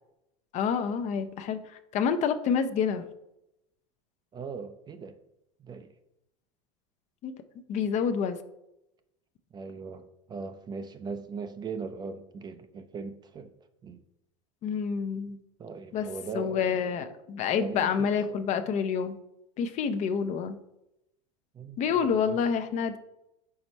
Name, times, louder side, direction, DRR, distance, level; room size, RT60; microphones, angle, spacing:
voice 1, 0.5-1.6 1.9-3.0 7.2-7.3 7.7-8.4 14.6-15.4 15.9-16.1 16.3-19.2 19.6-20.6 21.8-23.0, left 6 dB, 40° left, 10 dB, 0.6 m, -28 dB
voice 2, 4.3-5.2 5.6-5.9 9.5-13.5 13.8-14.0 15.6-17.0 17.6-18.1 21.5-22.4, right 5 dB, 25° right, 9 dB, 0.4 m, -39 dB
4.7 x 4.2 x 5.3 m, 0.86 s
supercardioid pair, 115°, 17 cm